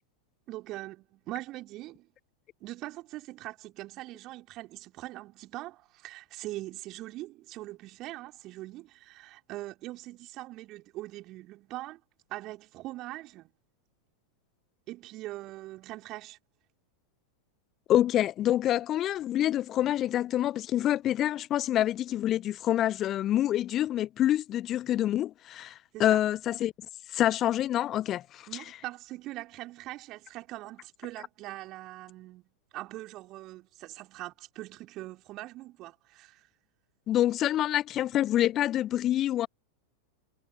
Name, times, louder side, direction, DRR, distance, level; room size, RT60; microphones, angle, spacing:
voice 1, 0.5-2.1 2.6-12.0 12.3-13.5 14.9-16.4 25.9-26.2 28.5-36.5, right 17 dB, 35° right, 3.4 m, -42 dB
voice 2, 17.9-25.7 26.0-26.7 27.1-28.4 37.1-39.5, left 12 dB, 30° left, 0.8 m, -26 dB
figure-of-eight pair, 90°, 0 cm